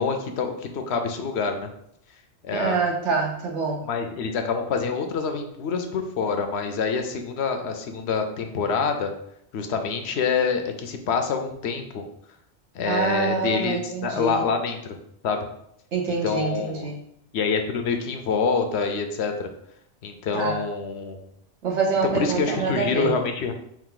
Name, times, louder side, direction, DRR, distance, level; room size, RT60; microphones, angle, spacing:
voice 1, 0.0-1.7 2.4-2.8 3.9-9.1 9.5-12.0 12.7-15.0 15.2-15.4 16.2-16.9 17.3-19.5 20.0-21.2 22.1-23.5, left 5 dB, 75° left, 6 dB, 0.8 m, -26 dB
voice 2, 2.5-3.8 12.9-14.4 15.9-17.0 20.3-20.6 21.6-23.2, right 4 dB, 80° right, 0 dB, 1.2 m, -26 dB
4.7 x 2.6 x 3.8 m, 0.74 s
omnidirectional pair, 1.2 m